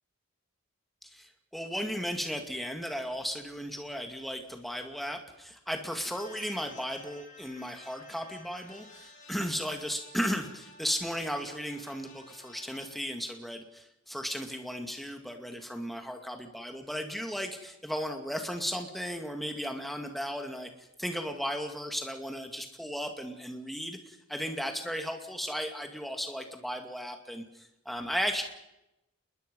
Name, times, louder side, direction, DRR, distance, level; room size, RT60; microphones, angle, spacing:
voice 1, 1.1-28.4, equal, ahead, 4 dB, 2.3 m, -35 dB
sound 1, 6.0-12.9, left 2 dB, 40° left, 5.5 m, -53 dB
28.0 x 21.5 x 5.5 m, 0.90 s
head